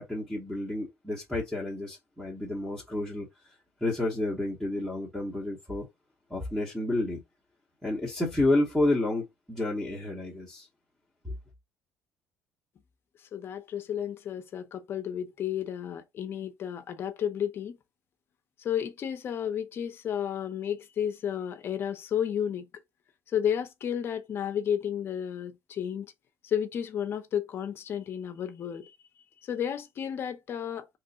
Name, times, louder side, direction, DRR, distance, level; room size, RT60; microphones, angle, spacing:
voice 1, 0.0-3.3 3.8-5.9 6.3-7.2 7.8-10.7 11.2-11.3, left 2 dB, ahead, 0.8 m, -30 dB
voice 2, 13.3-17.8 18.6-22.7 23.3-26.1 26.4-28.9 29.4-30.9, left 9 dB, 45° left, 0.6 m, -32 dB
3.3 x 3.0 x 2.7 m
cardioid pair, 145°, 6 cm